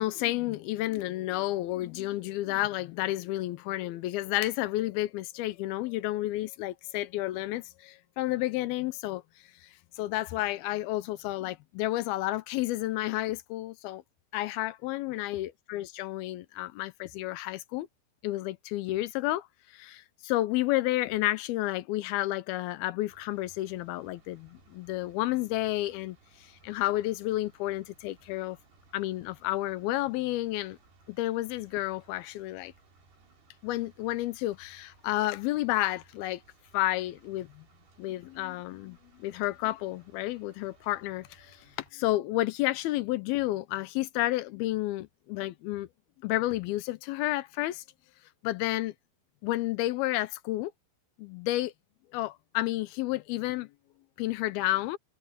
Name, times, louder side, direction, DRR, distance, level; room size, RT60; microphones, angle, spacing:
voice 1, 0.0-9.2 10.0-14.0 14.3-17.9 18.2-19.5 19.7-26.2 26.6-28.6 28.9-30.8 31.1-32.7 33.6-36.4 36.7-37.6 38.0-41.6 41.9-45.9 46.2-47.8 48.4-48.9 49.4-50.7 51.2-51.7 52.1-53.7 54.2-55.0, left 16 dB, 80° left, 2.4 m, -31 dB
sound 1, 23.1-41.9, right 3 dB, 70° right, 7.8 m, -62 dB
omnidirectional pair, 4.8 m